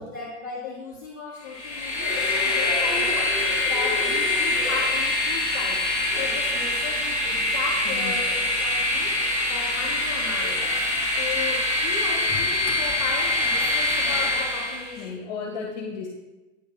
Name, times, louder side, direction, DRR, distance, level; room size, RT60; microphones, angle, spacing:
voice 1, 0.0-15.2, left 4 dB, 15° left, -9 dB, 0.4 m, -36 dB
Train, 1.4-14.9, left 2 dB, 10° right, 1.7 m, -24 dB
voice 2, 7.9-8.2 9.3-9.4 15.0-16.1, left 5 dB, 35° left, -1 dB, 0.9 m, -34 dB
9.4 x 3.5 x 5.4 m, 1.1 s
supercardioid pair, 180°, 40 cm